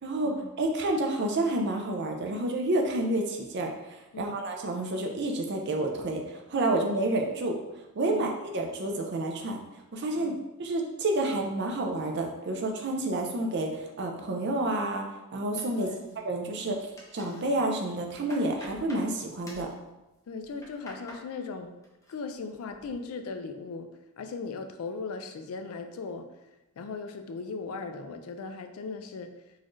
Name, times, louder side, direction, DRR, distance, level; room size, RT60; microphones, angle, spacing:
voice 1, 0.0-7.6 8.0-9.6 9.9-10.3 10.6-15.0 15.3-15.9 16.2-19.7, right 2 dB, 50° right, 2 dB, 0.5 m, -29 dB
sound 1, 15.6-16.4 16.7-17.4 17.9-19.1 19.4-19.7 20.4-21.3 21.6-22.1 22.5-22.9, left 1 dB, 15° left, 0.5 m, -48 dB
voice 2, 15.7-16.2 20.3-21.8 22.1-23.9 24.2-26.3 26.8-29.3, left 4 dB, 75° left, 7 dB, 0.4 m, -38 dB
3.9 x 2.6 x 3.1 m, 0.99 s
head